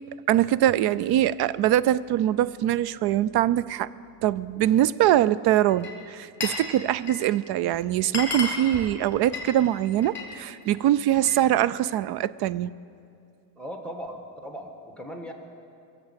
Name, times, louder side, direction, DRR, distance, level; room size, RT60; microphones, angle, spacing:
voice 1, 0.3-3.9 4.2-12.7, right 12 dB, 55° right, 19 dB, 0.5 m, -23 dB
Glass, 5.7-6.7 6.9-7.4 7.7-7.8 8.0-10.3 10.7-11.4, left 3 dB, 25° left, 3.0 m, -33 dB
voice 2, 13.6-15.3, equal, ahead, 3 dB, 1.4 m, -38 dB
22.0 x 7.4 x 8.2 m, 2.6 s
cardioid pair, 140°, 46 cm